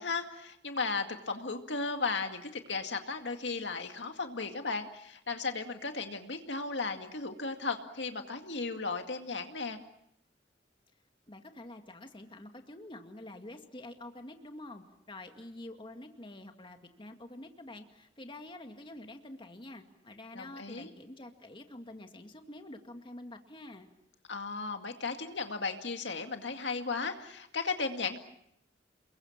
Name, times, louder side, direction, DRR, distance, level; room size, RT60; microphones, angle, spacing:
voice 1, 0.0-9.8 20.3-20.9 24.3-28.2, left 4 dB, 75° left, 5 dB, 2.2 m, -35 dB
voice 2, 11.3-23.9, left 1 dB, 30° left, 5 dB, 2.1 m, -47 dB
29.5 x 22.0 x 7.3 m, 0.76 s
head